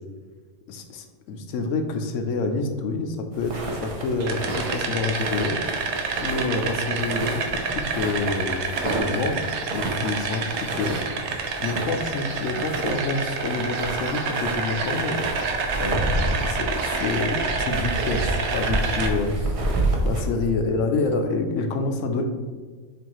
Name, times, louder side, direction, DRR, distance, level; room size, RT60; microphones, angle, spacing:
voice 1, 0.7-5.6 6.2-9.4 9.7-11.0 11.6-15.2 15.8-19.6 20.0-22.2, left 3 dB, 80° left, 5 dB, 0.9 m, -27 dB
sound 1, 3.3-20.2, right 2 dB, 40° right, 0.5 m, -30 dB
sound 2, 4.2-19.1, right 4 dB, 70° right, 0.9 m, -29 dB
7.0 x 2.6 x 2.9 m, 1.4 s
omnidirectional pair, 1.3 m